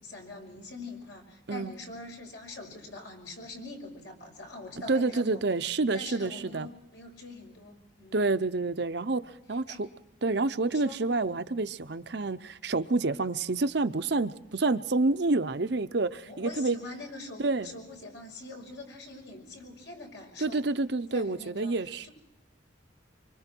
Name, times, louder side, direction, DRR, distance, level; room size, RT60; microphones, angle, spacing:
voice 1, 0.0-5.4 5.9-8.2 9.7-9.8 10.7-11.0 16.2-20.7 21.1-21.7 22.0-22.1, left 2 dB, 70° left, 2 dB, 5.7 m, -44 dB
voice 2, 4.9-6.7 8.1-9.2 9.5-9.9 10.2-16.8 17.4-17.8 20.4-22.1, right 3 dB, 60° right, 10 dB, 0.7 m, -28 dB
25.5 x 24.5 x 4.6 m, 0.88 s
head